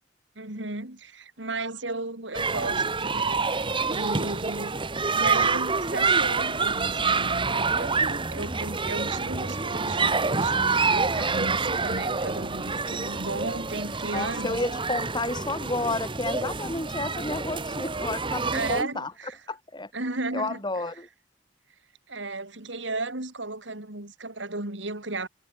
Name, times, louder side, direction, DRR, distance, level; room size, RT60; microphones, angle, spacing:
voice 1, 0.4-4.8 5.1-14.6 18.5-19.4 19.9-20.6 22.1-25.3, right 2 dB, 80° right, 4.0 m, -35 dB
sound 1, 2.3-18.8, right 4 dB, 25° right, 1.9 m, -27 dB
voice 2, 14.1-19.1 19.5-19.9 20.3-21.1, left 2 dB, 25° left, 6.0 m, -31 dB
head